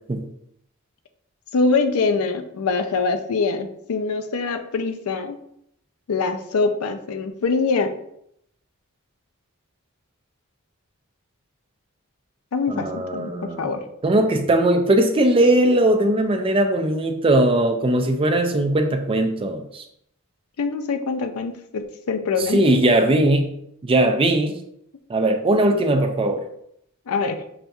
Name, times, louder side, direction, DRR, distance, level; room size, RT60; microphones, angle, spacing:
voice 1, 1.5-5.4 6.1-7.9 12.5-13.3 13.6-13.8 20.6-22.6 27.1-27.4, left 4 dB, 75° left, 8 dB, 0.5 m, -24 dB
voice 2, 12.7-13.7 14.0-19.8 22.5-23.5 23.8-24.6 25.1-26.4, right 1 dB, 25° right, 5 dB, 0.4 m, -19 dB
5.7 x 2.6 x 2.3 m, 0.73 s
head